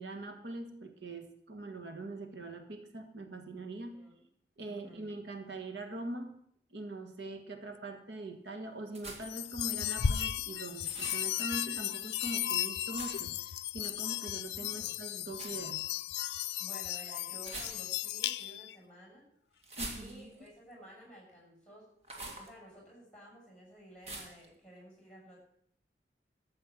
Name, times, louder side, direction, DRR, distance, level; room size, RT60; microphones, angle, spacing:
voice 1, 0.0-4.0 4.6-6.4 6.7-15.8 19.8-20.3, right 2 dB, 80° right, 6 dB, 1.5 m, -43 dB
voice 2, 4.7-5.2 14.8-14.9 16.6-19.3 19.9-21.9 22.1-25.4, equal, 5° left, -3 dB, 6.8 m, -53 dB
sound 1, 8.9-9.5 10.8-11.3 12.9-13.4 15.3-15.6 17.4-18.1 19.6-20.5 22.0-22.5 24.0-24.5, right 2 dB, 35° right, 2.0 m, -44 dB
sound 2, 9.2-18.7, left 10 dB, 75° left, 0.5 m, -35 dB
12.5 x 7.7 x 7.4 m, 0.66 s
head